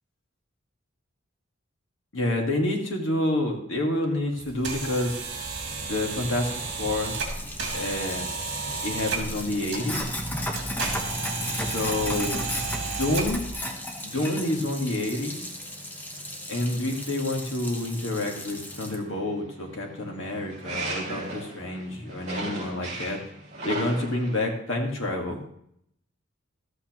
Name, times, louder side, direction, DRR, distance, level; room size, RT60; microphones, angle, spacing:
voice 1, 2.1-5.2 5.8-7.2 7.7-8.3 8.8-10.2 11.5-12.4 12.8-13.5 14.0-15.5 16.5-23.2 23.6-25.4, left 1 dB, 75° left, 1 dB, 1.8 m, -28 dB
sound 1, 4.4-13.6, right 4 dB, 60° right, 2.1 m, -33 dB
sound 2, 5.6-24.4, right 2 dB, 35° right, 4.7 m, -41 dB
Sink (filling or washing), 7.0-19.0, left 1 dB, 10° left, 1.0 m, -35 dB
12.5 x 8.3 x 3.0 m, 0.71 s
head